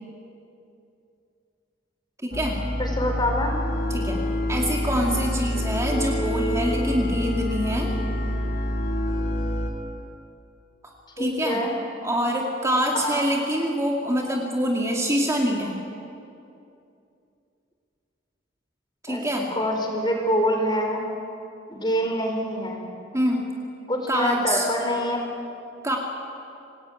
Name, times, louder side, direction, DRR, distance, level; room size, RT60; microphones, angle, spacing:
voice 1, 2.2-2.6 3.9-4.2 4.5-7.9 10.8-11.6 12.0-15.8 19.0-19.5 23.1-23.5 24.1-24.7 25.8-26.0, equal, 15° right, -1 dB, 2.5 m, -25 dB
sound 1, 2.3-9.7, left 1 dB, 50° left, 3.5 m, -26 dB
voice 2, 2.8-3.6 11.2-11.8 12.9-13.2 19.1-21.1 21.7-22.8 23.9-25.3, equal, 25° left, 2 dB, 4.7 m, -26 dB
27.0 x 19.5 x 9.2 m, 2.6 s
head